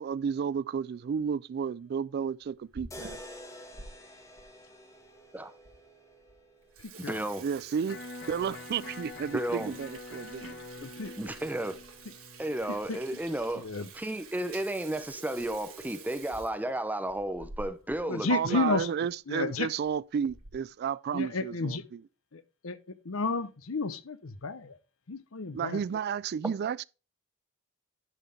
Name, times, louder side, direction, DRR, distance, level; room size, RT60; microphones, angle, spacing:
voice 1, 0.0-3.2 7.4-8.0 8.3-10.9 18.3-22.0 25.5-26.8, right 7 dB, 50° right, 0.3 m, -32 dB
Water tap faucet / Sink (filling or washing), 2.4-3.9 4.4-4.5 5.2-5.3 5.6-5.7 6.1-6.3 6.6-18.0 18.3-18.4 18.7-18.8 19.6-19.9 20.3-20.7, right 4 dB, 90° right, 2.4 m, -49 dB
sound 1, 2.9-7.0, left 1 dB, 15° left, 1.8 m, -48 dB
voice 2, 7.1-7.4 9.3-9.7 11.2-11.8 12.4-18.8 26.4-26.5, right 1 dB, 10° right, 0.6 m, -33 dB
Electric guitar, 7.9-13.9, left 2 dB, 60° left, 1.5 m, -46 dB
voice 3, 10.8-11.1 12.9-13.0 13.6-13.9 18.1-18.9 19.3-19.7 21.1-21.8 22.3-22.8 23.1-24.7 25.1-25.8, left 4 dB, 80° left, 0.8 m, -32 dB
11.0 x 5.7 x 3.4 m
head